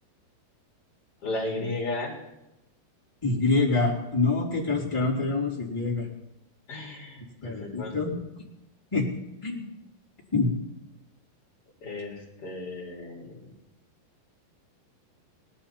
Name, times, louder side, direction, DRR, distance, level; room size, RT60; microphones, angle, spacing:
voice 1, 1.2-2.2 6.7-8.0 11.8-13.4, left 2 dB, 40° left, -3 dB, 3.3 m, -34 dB
voice 2, 3.2-6.1 7.4-8.1 8.9-9.1 9.4-9.6 10.3-10.5, left 3 dB, 10° left, -6 dB, 2.6 m, -26 dB
19.5 x 11.5 x 4.4 m, 0.91 s
omnidirectional pair, 4.8 m